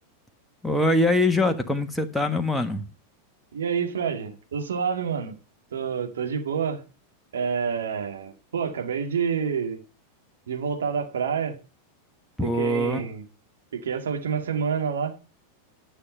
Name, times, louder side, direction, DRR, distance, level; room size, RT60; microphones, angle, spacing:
voice 1, 0.6-2.8 12.4-13.0, left 1 dB, 5° left, 1.3 m, -23 dB
voice 2, 3.5-5.3 5.7-6.8 7.3-9.8 10.5-11.6 12.5-13.2 13.7-15.2, right 6 dB, 65° right, 2.2 m, -28 dB
12.0 x 6.9 x 5.5 m
figure-of-eight pair, 90°, 0 cm